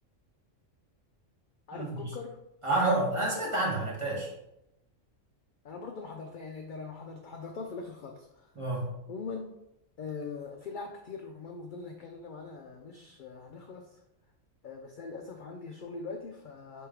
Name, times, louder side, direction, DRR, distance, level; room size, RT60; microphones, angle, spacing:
voice 1, 1.7-2.4 5.6-8.5 9.1-9.5 10.0-14.0 14.6-16.9, left 4 dB, 65° left, 3 dB, 0.5 m, -42 dB
voice 2, 2.6-4.3 8.6-8.9, right 2 dB, 25° right, -3 dB, 1.1 m, -28 dB
3.6 x 3.1 x 4.8 m, 0.85 s
omnidirectional pair, 1.3 m